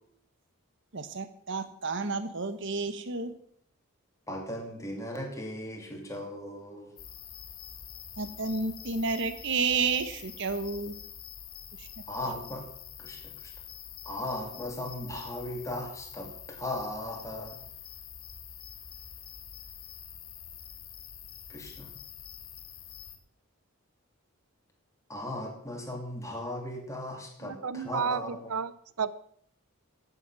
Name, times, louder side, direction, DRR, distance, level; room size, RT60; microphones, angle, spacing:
voice 1, 0.9-3.3 8.2-10.9 11.8-11.9, right 4 dB, 55° right, 11 dB, 1.1 m, -31 dB
voice 2, 4.3-6.9 12.1-12.6 13.0-13.5 14.0-17.6 21.5-21.9 25.1-28.5, left 1 dB, 15° left, 1 dB, 2.7 m, -37 dB
sound 1, 7.0-23.2, left 9 dB, 75° left, 2.2 m, -46 dB
voice 3, 27.4-28.7 29.0-29.1, right 6 dB, 85° right, 17 dB, 0.7 m, -31 dB
16.0 x 8.0 x 6.1 m, 0.64 s
head